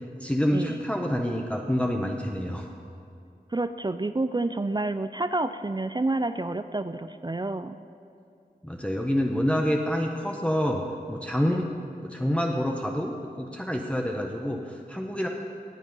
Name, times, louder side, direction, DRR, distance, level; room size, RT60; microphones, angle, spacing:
voice 1, 0.2-2.7 8.6-10.8 11.1-11.7 12.0-15.3, equal, 5° left, 1 dB, 0.9 m, -27 dB
voice 2, 3.5-7.8 11.5-11.6, right 2 dB, 25° right, 11 dB, 0.4 m, -29 dB
18.5 x 7.4 x 5.4 m, 2.4 s
wide cardioid pair, 50°, 17 cm